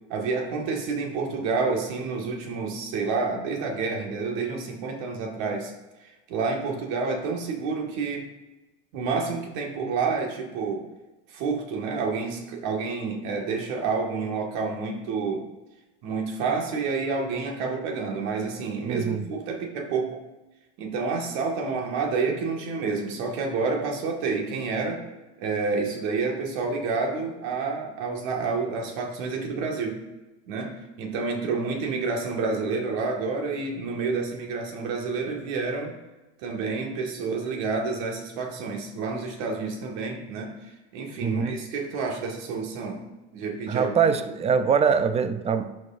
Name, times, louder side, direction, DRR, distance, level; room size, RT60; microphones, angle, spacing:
voice 1, 0.1-5.7 6.0-8.3 8.9-10.8 11.3-15.4 16.0-20.2 20.8-25.0 25.4-30.0 30.5-35.9 36.4-40.5 40.9-43.0 43.3-44.4, right 4 dB, 60° right, 1 dB, 1.7 m, -29 dB
voice 2, 18.9-19.2 41.2-41.5 43.7-45.7, right 6 dB, 20° right, 11 dB, 0.5 m, -23 dB
11.5 x 4.6 x 2.5 m, 1.1 s
hypercardioid pair, 85°, 34 cm